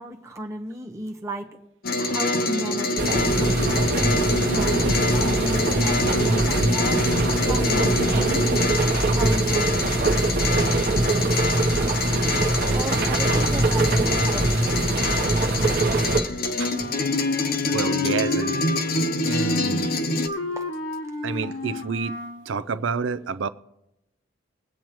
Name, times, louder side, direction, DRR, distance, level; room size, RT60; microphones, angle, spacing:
voice 1, 0.0-1.6 2.0-4.1 4.4-7.0 7.4-8.6 9.1-10.3 10.9-12.0 12.7-15.0 16.6-16.7 18.0-18.1 20.6-20.7, right 1 dB, 15° right, 1.1 m, -35 dB
sound 1, 1.8-20.3, left 2 dB, 50° left, 0.9 m, -26 dB
sound 2, 3.0-16.2, right 2 dB, 55° right, 0.9 m, -22 dB
Wind instrument woodwind instrument, 16.6-22.5, left 1 dB, 70° left, 1.5 m, -33 dB
voice 2, 17.7-18.6 19.2-19.9 21.2-22.1 22.5-23.5, right 5 dB, 80° right, 0.5 m, -28 dB
22.0 x 8.8 x 3.1 m
head